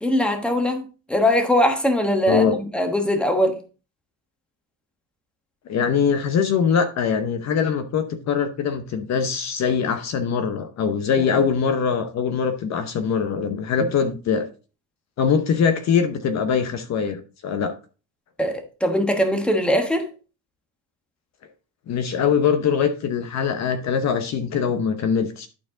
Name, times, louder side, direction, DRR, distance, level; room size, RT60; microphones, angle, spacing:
voice 1, 0.0-2.4 2.7-3.5 11.2-11.4 13.8-13.9 18.4-20.1, left 1 dB, 5° left, 1.2 m, -21 dB
voice 2, 2.3-2.6 5.7-14.5 15.2-17.7 21.9-25.5, left 6 dB, 45° left, 0.9 m, -22 dB
11.5 x 4.6 x 3.8 m
cardioid pair, 145°, 39 cm